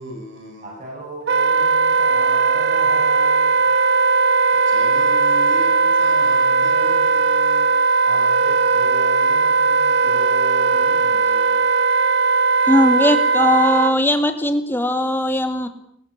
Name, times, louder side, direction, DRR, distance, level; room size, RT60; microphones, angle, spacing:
voice 1, 0.0-0.8 4.5-7.7, equal, 80° right, 4 dB, 7.4 m, -36 dB
voice 2, 0.6-3.6 8.0-11.7, right 1 dB, 40° right, -3 dB, 7.1 m, -36 dB
Wind instrument woodwind instrument, 1.3-13.9, right 4 dB, 60° right, 2.1 m, -17 dB
voice 3, 12.7-15.7, left 1 dB, 10° left, 6 dB, 2.6 m, -19 dB
22.5 x 20.0 x 8.4 m, 0.72 s
head